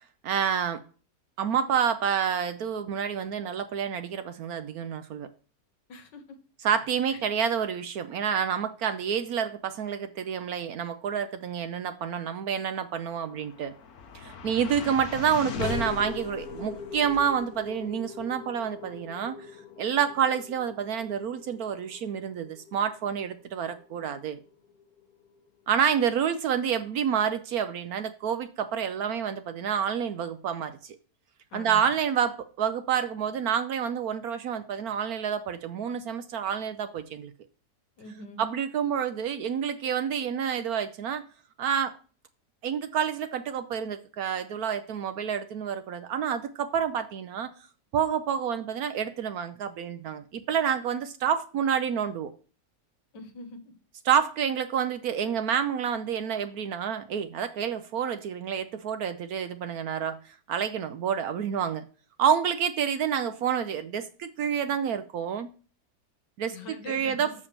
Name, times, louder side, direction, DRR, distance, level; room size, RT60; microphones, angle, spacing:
voice 1, 0.2-0.8 1.4-5.3 6.6-13.7 14.1-19.4 19.8-24.4 25.7-31.0 31.5-37.3 38.4-41.2 41.6-41.9 42.6-47.5 47.9-52.3 54.1-61.8 62.2-65.5 66.4-66.6 66.9-67.3, right 8 dB, 65° right, 10 dB, 1.0 m, -28 dB
voice 2, 5.9-6.2 7.1-7.2 31.5-31.9 38.0-38.4 53.1-53.6 66.5-67.3, left 3 dB, 85° left, 6 dB, 1.9 m, -43 dB
sound 1, 13.0-25.4, left 6 dB, 60° left, 1.4 m, -40 dB
7.0 x 5.0 x 6.7 m, 0.39 s
omnidirectional pair, 1.8 m